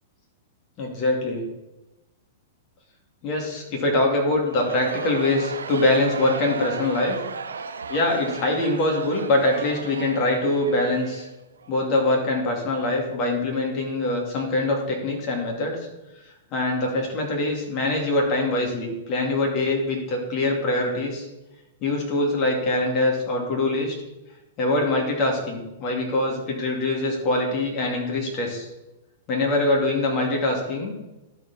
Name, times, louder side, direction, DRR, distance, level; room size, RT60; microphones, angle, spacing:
voice 1, 0.8-1.5 3.2-7.2 7.9-11.3 11.7-15.8 16.5-21.2 21.8-23.9 24.6-28.7 29.3-30.9, left 2 dB, 40° left, 0 dB, 2.6 m, -23 dB
Crowd, 4.4-11.7, right 5 dB, 90° right, 0.5 m, -35 dB
12.0 x 4.6 x 4.3 m, 1.0 s
hypercardioid pair, 120°, 0 cm